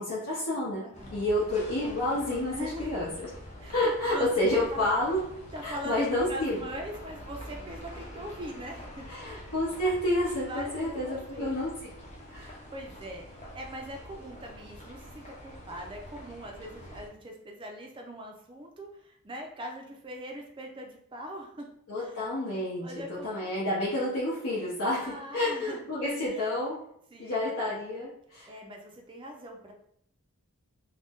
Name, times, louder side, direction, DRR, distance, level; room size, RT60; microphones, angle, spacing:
voice 1, 0.0-0.8 1.1-3.1 3.7-5.2 5.6-6.6 9.1-11.7 12.3-12.6 21.9-22.8 23.2-25.0 25.3-26.8 27.2-28.5, left 1 dB, 70° left, -8 dB, 0.8 m, -29 dB
voice 2, 0.8-1.2 2.5-2.9 3.6-4.9 5.5-9.4 10.5-11.6 12.7-21.7 22.0-22.2 22.8-23.8 25.0-26.6 27.1-27.5 28.5-29.7, equal, 20° right, 2 dB, 0.3 m, -42 dB
sound 1, 0.9-17.1, equal, 30° left, 0.5 m, -46 dB
2.6 x 2.1 x 3.5 m, 0.71 s
head